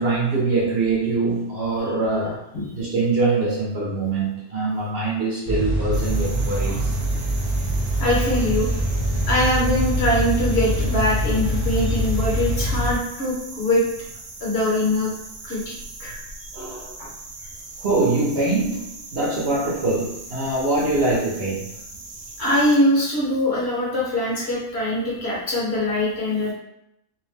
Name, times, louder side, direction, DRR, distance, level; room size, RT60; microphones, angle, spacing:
voice 1, 0.0-2.4 2.7-7.0 16.5-16.9 17.8-21.8, right 3 dB, 55° right, -5 dB, 0.9 m, -23 dB
sound 1, 5.4-12.9, right 1 dB, 40° left, 0.6 m, -24 dB
sound 2, 5.9-22.8, right 2 dB, 85° right, 1.0 m, -39 dB
voice 2, 8.0-8.7 9.3-13.8 14.4-15.1 15.4-15.7 16.0-16.2 17.0-17.1 22.4-26.5, left 1 dB, 55° left, -5 dB, 1.0 m, -22 dB
2.7 x 2.1 x 3.2 m, 0.81 s
omnidirectional pair, 1.4 m